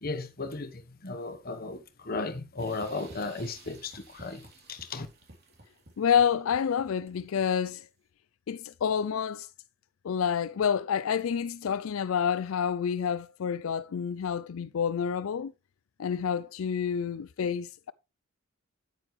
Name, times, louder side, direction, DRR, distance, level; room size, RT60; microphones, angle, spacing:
voice 1, 0.0-4.4 4.7-5.1, left 3 dB, 45° left, 1.1 m, -35 dB
sound 1, 2.6-7.7, right 2 dB, 50° right, 3.2 m, -52 dB
voice 2, 6.0-7.8 8.5-9.5 10.0-15.5 16.0-17.9, left 7 dB, 75° left, 0.4 m, -28 dB
9.8 x 9.0 x 3.2 m
head